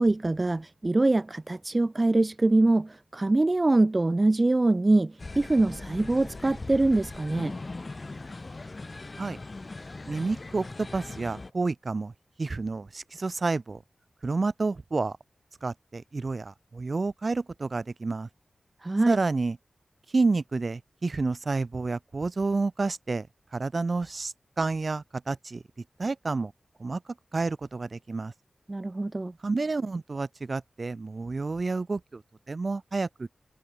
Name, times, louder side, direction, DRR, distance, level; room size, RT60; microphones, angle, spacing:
voice 1, 0.0-7.6 18.8-19.2 28.7-29.3, right 2 dB, 30° right, 0.7 m, -24 dB
sound 1, 5.2-11.5, left 3 dB, 35° left, 3.7 m, -40 dB
voice 2, 10.1-12.1 12.4-13.8 14.2-15.2 15.6-18.3 19.1-19.6 20.1-23.3 23.5-25.6 26.0-26.5 26.8-27.0 27.3-28.3 29.4-32.2 32.5-33.3, right 3 dB, 45° right, 1.1 m, -29 dB
wide cardioid pair, 100°, 0 cm